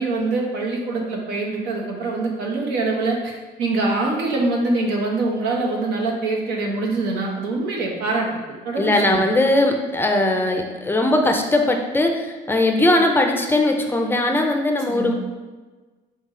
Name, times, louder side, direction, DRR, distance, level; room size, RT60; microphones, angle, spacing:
voice 1, 0.0-9.2 14.9-15.1, right 3 dB, 90° right, -1 dB, 0.9 m, -24 dB
voice 2, 8.8-15.1, left 1 dB, 15° left, 3 dB, 0.4 m, -19 dB
4.2 x 3.0 x 3.8 m, 1.3 s
cardioid pair, 110°, 17 cm